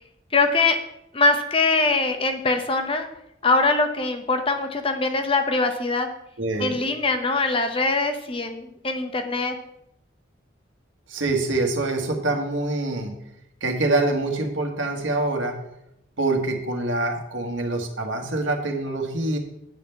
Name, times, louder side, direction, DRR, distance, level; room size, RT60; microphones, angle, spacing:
voice 1, 0.3-0.8 1.1-3.1 3.4-6.1 6.6-9.5, left 3 dB, 30° left, 6 dB, 0.9 m, -22 dB
voice 2, 6.4-6.8 11.1-13.1 13.6-15.6 16.2-19.4, right 2 dB, 80° right, 3 dB, 1.7 m, -25 dB
8.6 x 5.7 x 6.9 m, 0.81 s
head